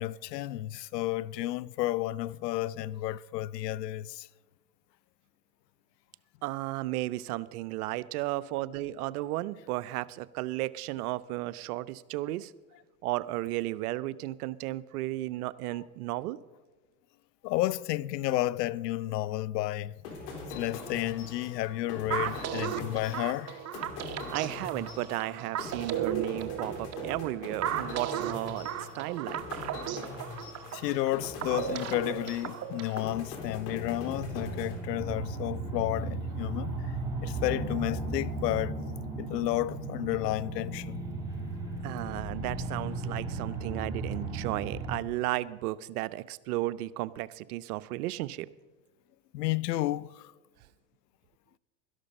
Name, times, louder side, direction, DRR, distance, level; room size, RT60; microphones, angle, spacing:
voice 1, 0.0-4.3 17.4-19.9 20.5-23.6 30.7-36.8 37.2-38.8 39.2-41.0 49.3-50.3, left 15 dB, 80° left, 0.6 m, -31 dB
voice 2, 6.4-12.5 13.0-16.4 24.3-29.4 41.8-48.5, right 17 dB, 65° right, 0.7 m, -34 dB
sound 1, 20.0-35.3, left 3 dB, 65° left, 3.9 m, -42 dB
sound 2, 22.1-33.1, right 10 dB, 35° right, 1.0 m, -35 dB
sound 3, 33.1-45.0, right 3 dB, 5° right, 4.0 m, -36 dB
12.5 x 11.5 x 5.3 m
hypercardioid pair, 105°, 48 cm